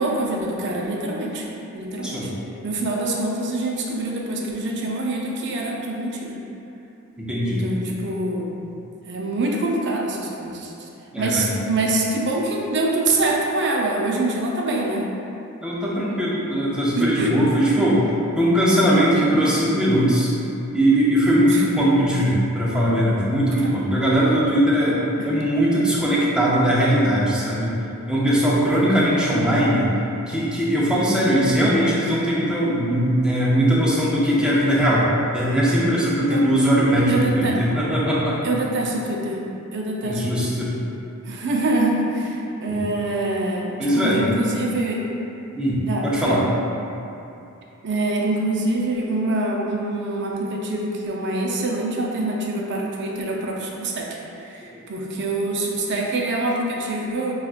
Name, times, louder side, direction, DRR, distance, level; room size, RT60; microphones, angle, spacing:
voice 1, 0.0-2.3 2.6-6.4 7.3-8.5 9.0-10.9 11.2-15.1 17.0-17.4 21.4-21.6 23.6-23.7 25.2-25.3 36.3-36.4 37.1-37.6 38.4-39.4 39.7-40.7 41.2-45.0 45.8-46.4 47.8-54.1 54.4-57.3, right 2 dB, 55° right, -2 dB, 0.5 m, -25 dB
voice 2, 7.2-7.7 11.1-11.5 15.6-18.1 18.4-20.3 20.7-27.7 28.1-29.9 30.3-38.4 40.0-40.7 42.7-42.8 43.8-44.3 45.5-46.4, equal, 5° right, -7 dB, 0.6 m, -20 dB
5.6 x 2.4 x 2.4 m, 2.8 s
head